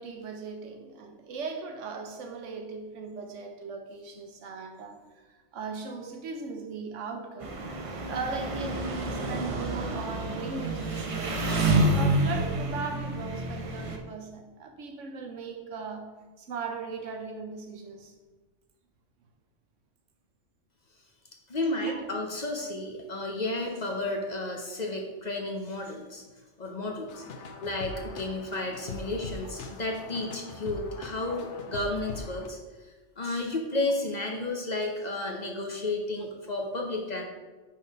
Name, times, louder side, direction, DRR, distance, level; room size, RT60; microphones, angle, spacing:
voice 1, 0.0-5.0 5.5-7.6 8.1-11.4 11.9-16.1 16.4-18.1 21.8-22.0, right 4 dB, 80° right, 4 dB, 1.2 m, -38 dB
Engine, 7.4-14.0, right 2 dB, 40° right, 0.5 m, -28 dB
voice 2, 21.5-26.2 26.6-27.2 27.6-32.6 33.2-37.2, left 2 dB, 40° left, 1 dB, 0.8 m, -32 dB
sound 1, 27.1-32.5, left 3 dB, 75° left, 1.0 m, -41 dB
5.4 x 4.2 x 5.1 m, 1.2 s
omnidirectional pair, 1.2 m